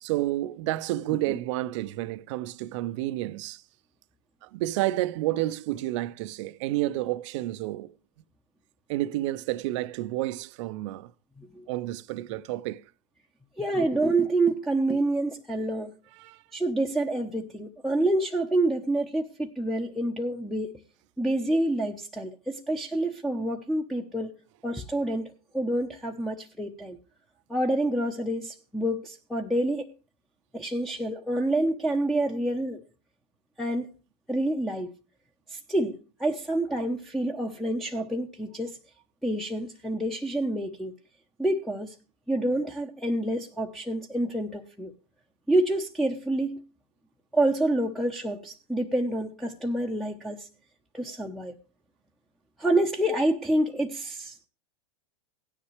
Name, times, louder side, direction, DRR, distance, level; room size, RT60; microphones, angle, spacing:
voice 1, 0.0-3.6 4.4-7.9 8.9-11.1 11.7-12.8 16.2-16.4, right 16 dB, 60° right, 0.6 m, -30 dB
voice 2, 13.6-15.9 16.5-20.7 21.2-24.3 24.6-27.0 27.5-29.9 30.5-32.8 33.6-33.9 34.3-34.9 35.5-38.8 39.2-40.9 41.4-41.9 42.3-44.9 45.5-46.6 47.3-50.5 50.9-51.5 52.6-54.4, right 1 dB, ahead, 0.9 m, -27 dB
17.0 x 9.9 x 3.2 m
hypercardioid pair, 100°, 18 cm